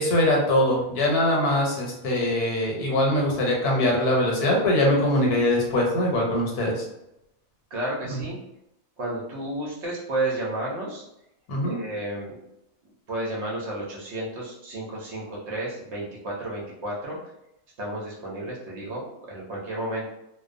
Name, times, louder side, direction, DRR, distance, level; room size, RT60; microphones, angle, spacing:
voice 1, 0.0-6.8 8.1-8.2 11.5-11.8, left 1 dB, 90° left, -1 dB, 1.3 m, -22 dB
voice 2, 7.7-8.4 9.0-11.0 11.6-12.4 13.1-17.2 17.8-19.0 19.3-20.0, right 1 dB, 60° right, -4 dB, 0.8 m, -32 dB
2.6 x 2.1 x 2.4 m, 0.84 s
omnidirectional pair, 1.6 m